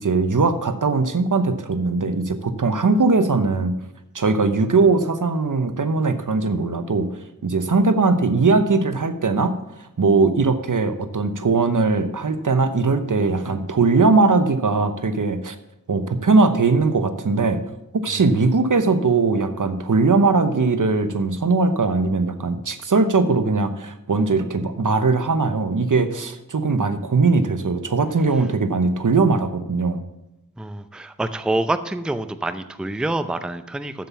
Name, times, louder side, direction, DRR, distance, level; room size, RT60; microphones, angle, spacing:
voice 1, 0.0-3.7 4.1-7.1 7.4-15.5 15.9-17.6 17.9-30.0, right 3 dB, 65° right, 9 dB, 0.9 m, -20 dB
voice 2, 30.6-33.9, right 2 dB, ahead, 11 dB, 0.5 m, -26 dB
7.5 x 7.4 x 7.1 m, 0.90 s
wide cardioid pair, 50°, 34 cm